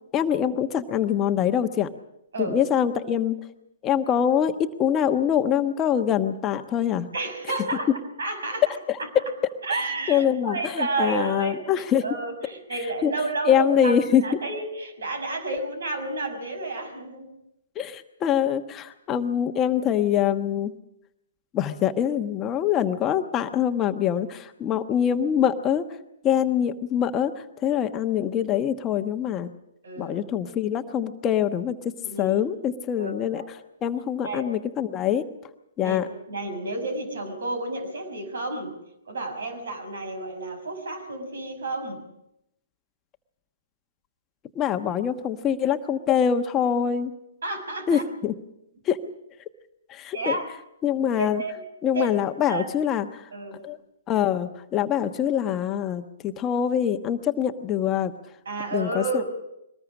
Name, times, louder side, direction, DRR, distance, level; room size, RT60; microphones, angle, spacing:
voice 1, 0.1-1.9 2.4-3.4 3.8-7.1 8.9-9.0 10.1-12.0 13.0-13.1 13.5-14.3 17.8-20.7 21.5-25.9 26.2-29.5 30.0-31.9 32.2-33.4 33.8-35.2 35.8-36.1 44.5-47.1 47.9-48.3 48.8-49.0 49.9-50.4 50.8-51.4 51.8-53.3 53.6-53.8 54.1-58.1 58.7-59.2, left 9 dB, 25° left, 7 dB, 1.2 m, -24 dB
voice 2, 7.1-7.9 8.2-8.6 9.0-9.1 9.6-14.0 14.2-17.4 29.8-30.5 32.0-32.4 33.0-33.5 34.2-34.4 35.8-36.0 36.3-38.7 39.1-42.0 47.4-48.1 50.1-50.5 51.2-51.5 51.9-52.1 52.5-52.7 53.3-53.6 58.5-59.3, right 3 dB, 70° right, 8 dB, 6.1 m, -31 dB
23.0 x 20.0 x 6.2 m, 0.82 s
figure-of-eight pair, 120°, 0 cm